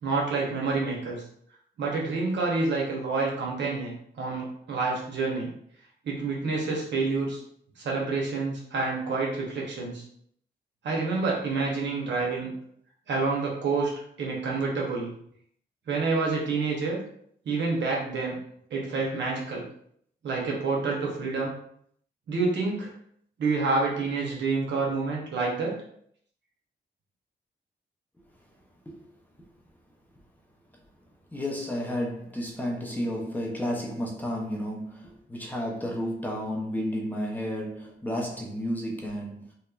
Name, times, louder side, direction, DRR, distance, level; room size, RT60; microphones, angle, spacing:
voice 1, 0.0-1.2 1.8-5.5 6.0-7.4 7.8-10.0 10.8-12.5 13.1-13.9 14.2-15.1 15.9-17.0 17.5-18.4 18.7-19.6 20.2-21.5 22.3-22.9 23.4-25.7, right 3 dB, 85° right, -2 dB, 0.8 m, -28 dB
voice 2, 31.3-39.4, equal, 10° left, -2 dB, 0.5 m, -32 dB
2.9 x 2.1 x 2.3 m, 0.66 s
cardioid pair, 90°, 18 cm